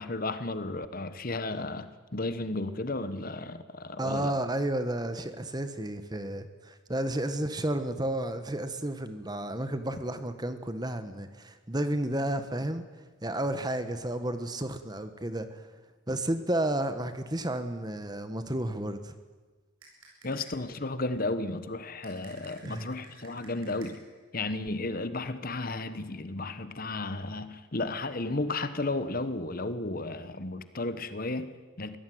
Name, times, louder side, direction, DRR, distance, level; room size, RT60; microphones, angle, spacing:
voice 1, 0.0-4.3 20.2-24.0 24.3-32.0, left 2 dB, 45° left, 12 dB, 1.2 m, -33 dB
voice 2, 4.0-12.9 13.2-15.7 16.1-19.1 22.6-22.9, right 1 dB, 20° right, 10 dB, 1.3 m, -32 dB
sound 1, 19.8-20.7 22.0-24.2, right 2 dB, 75° right, 7.8 m, -54 dB
23.5 x 17.5 x 9.4 m, 1.4 s
head